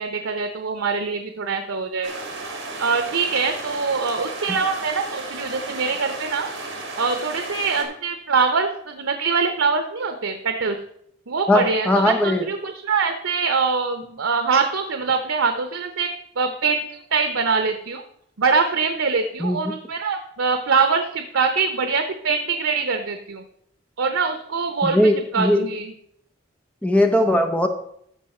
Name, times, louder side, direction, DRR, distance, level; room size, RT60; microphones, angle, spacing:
voice 1, 0.0-2.1 2.8-6.5 7.0-10.8 11.3-16.8 17.1-18.0 18.4-23.4 24.0-25.0 25.3-25.9, right 5 dB, 85° right, 7 dB, 0.8 m, -23 dB
sound 1, 2.0-7.8, right 2 dB, 60° right, 2.1 m, -34 dB
voice 2, 11.5-12.5 19.4-19.6 24.8-25.7 26.8-27.7, left 1 dB, 5° left, 4 dB, 0.7 m, -19 dB
13.5 x 4.8 x 4.3 m, 0.72 s
head